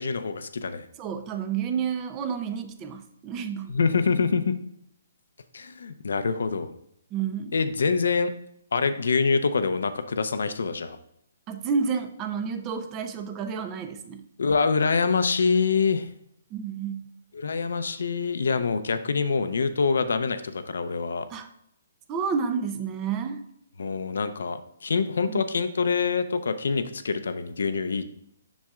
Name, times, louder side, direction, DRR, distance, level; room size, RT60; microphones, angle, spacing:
voice 1, 0.0-0.9 3.7-4.5 5.5-6.7 7.5-8.3 8.7-11.0 14.4-16.1 17.3-21.3 23.8-28.0, left 5 dB, 80° left, 10 dB, 0.6 m, -25 dB
voice 2, 1.0-3.8 7.1-7.5 11.5-14.2 16.5-17.0 21.3-21.5 22.1-23.4 25.3-25.4, right 6 dB, 20° right, 8 dB, 0.4 m, -30 dB
7.3 x 6.3 x 2.4 m, 0.73 s
hypercardioid pair, 160°, 0 cm